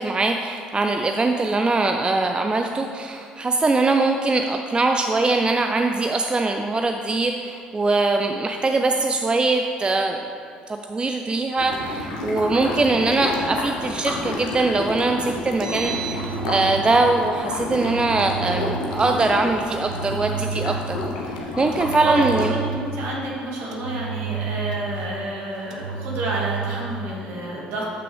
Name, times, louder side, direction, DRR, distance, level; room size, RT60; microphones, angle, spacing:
voice 1, 0.0-10.2 10.7-21.0 21.3-22.5, right 3 dB, 20° right, 4 dB, 0.5 m, -22 dB
sound 1, 11.6-22.5, left 2 dB, 70° left, 1.0 m, -30 dB
Engine, 15.4-16.9 17.7-18.9 19.7-21.0 21.7-23.0 23.7-25.1 25.7-26.9, right 7 dB, 75° right, 0.5 m, -31 dB
voice 2, 22.0-27.8, right 1 dB, 60° right, -4 dB, 2.0 m, -29 dB
14.0 x 5.9 x 3.3 m, 2.4 s
figure-of-eight pair, 50°, 4 cm